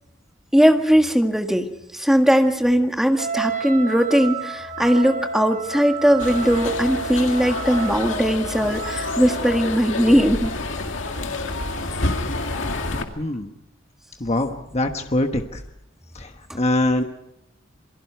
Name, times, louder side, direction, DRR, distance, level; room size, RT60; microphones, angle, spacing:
voice 1, 0.5-1.7 1.9-10.5, equal, ahead, 4 dB, 1.8 m, -19 dB
Wind instrument woodwind instrument, 3.2-9.8, right 4 dB, 40° right, 1.3 m, -31 dB
sound 1, 6.2-13.0, left 2 dB, 75° left, 2.2 m, -28 dB
voice 2, 13.2-13.5 14.2-15.6 16.1-17.0, left 1 dB, 35° left, 5 dB, 1.3 m, -23 dB
28.0 x 22.5 x 4.6 m, 0.82 s
head